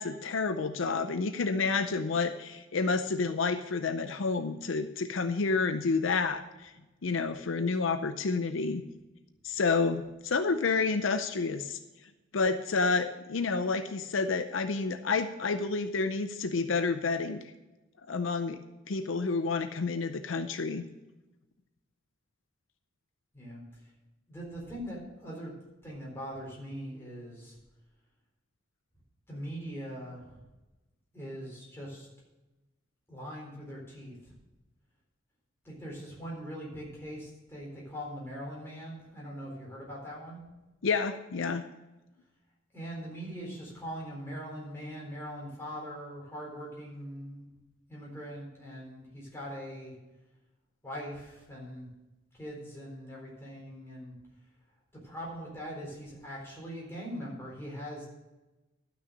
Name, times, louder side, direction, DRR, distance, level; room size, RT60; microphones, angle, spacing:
voice 1, 0.0-6.7 7.0-8.8 9.4-11.8 12.3-17.4 18.1-18.6 18.9-20.9 40.8-41.6, left 4 dB, 75° left, 9 dB, 0.6 m, -29 dB
voice 2, 24.3-25.5 25.8-27.6 29.3-30.4 31.1-32.1 33.1-34.2 35.6-40.4 42.7-47.5 47.9-49.9 50.8-51.9 52.3-54.2 55.0-58.1, equal, 10° left, -4 dB, 4.0 m, -41 dB
12.0 x 6.3 x 6.5 m, 1.1 s
head